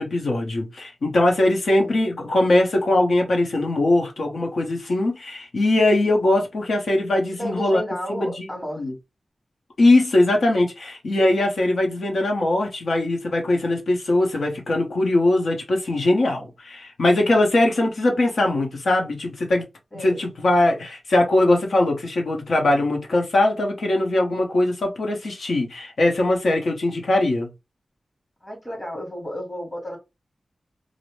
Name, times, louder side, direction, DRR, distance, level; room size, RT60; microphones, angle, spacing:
voice 1, 0.0-7.8 8.1-8.5 8.8-8.9 9.8-19.6 20.0-27.5, left 2 dB, 80° left, 0.8 m, -21 dB
voice 2, 7.4-8.8 19.9-20.2 28.4-30.0, equal, 20° left, 1.3 m, -32 dB
2.5 x 2.0 x 3.0 m
wide cardioid pair, 115°, 0 cm